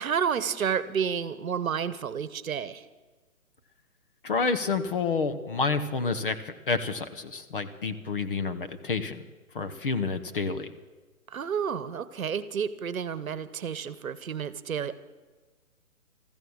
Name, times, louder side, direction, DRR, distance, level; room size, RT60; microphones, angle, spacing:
voice 1, 0.0-2.8 11.3-15.0, right 7 dB, 65° right, 15 dB, 1.1 m, -30 dB
voice 2, 4.2-9.2 9.5-10.7, left 4 dB, 40° left, 9 dB, 0.9 m, -29 dB
14.5 x 14.0 x 6.4 m, 1.3 s
hypercardioid pair, 165°, 44 cm